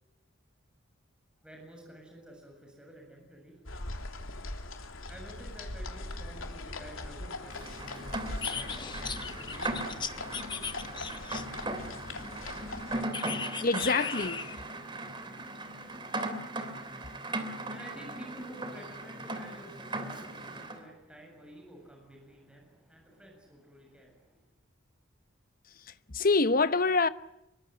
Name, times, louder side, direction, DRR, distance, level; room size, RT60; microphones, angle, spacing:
voice 1, 1.4-3.6 5.1-8.1 9.4-10.8 14.5-15.5 17.7-24.5, equal, 5° right, 7.5 m, -51 dB
sound 1, 3.6-13.0, left 2 dB, 75° left, 3.1 m, -41 dB
Rain, 7.5-20.8, right 2 dB, 25° right, 3.0 m, -38 dB
sound 2, 8.4-11.7 13.1-14.6, left 6 dB, 20° left, 1.2 m, -37 dB
voice 2, 13.6-14.6 25.9-27.1, left 3 dB, 40° left, 1.0 m, -26 dB
26.0 x 23.5 x 9.1 m
head